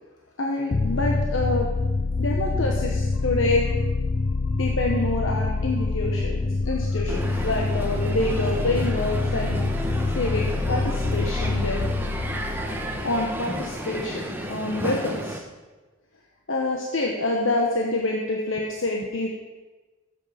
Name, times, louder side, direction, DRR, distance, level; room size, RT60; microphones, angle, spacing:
voice 1, 0.4-1.7 2.2-3.7 4.4-9.7 10.1-11.9 13.0-15.4 16.5-19.3, left 2 dB, 65° left, 0 dB, 1.2 m, -27 dB
sound 1, 0.7-14.1, left 3 dB, 40° left, 0.5 m, -26 dB
Crowd, 7.1-15.4, right 1 dB, 10° right, 1.1 m, -33 dB
13.0 x 8.4 x 5.1 m, 1.2 s
head